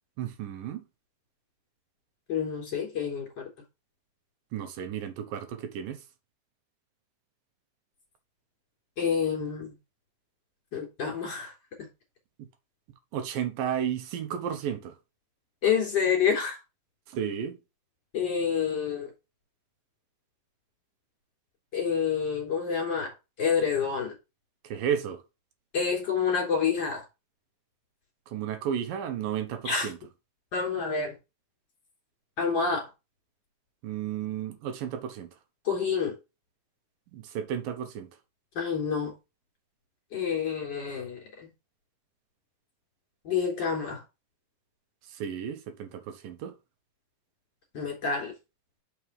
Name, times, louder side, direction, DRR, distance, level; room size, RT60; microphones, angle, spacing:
voice 1, 0.2-0.8 4.5-6.0 13.1-15.0 17.1-17.6 24.6-25.2 28.3-30.0 33.8-35.3 37.1-38.1 45.1-46.5, right 9 dB, 75° right, 2.7 m, -33 dB
voice 2, 2.3-3.5 9.0-9.7 10.7-11.5 15.6-16.6 18.1-19.1 21.7-24.1 25.7-27.0 29.6-29.9 30.5-31.2 32.4-32.9 35.6-36.2 38.5-39.1 40.1-41.5 43.2-44.0 47.7-48.3, left 6 dB, 30° left, 4.1 m, -28 dB
6.1 x 5.4 x 4.8 m
omnidirectional pair, 4.2 m